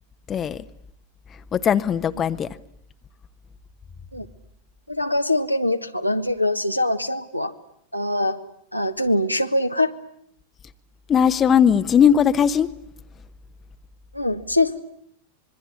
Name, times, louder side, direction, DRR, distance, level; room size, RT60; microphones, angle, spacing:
voice 1, 0.3-0.6 1.5-2.5 11.1-12.7, left 8 dB, 25° left, 1.1 m, -18 dB
voice 2, 4.9-7.5 7.9-8.4 8.7-9.9 14.1-14.8, left 1 dB, 90° left, 1.5 m, -23 dB
26.0 x 22.5 x 9.8 m
figure-of-eight pair, 90°, 0 cm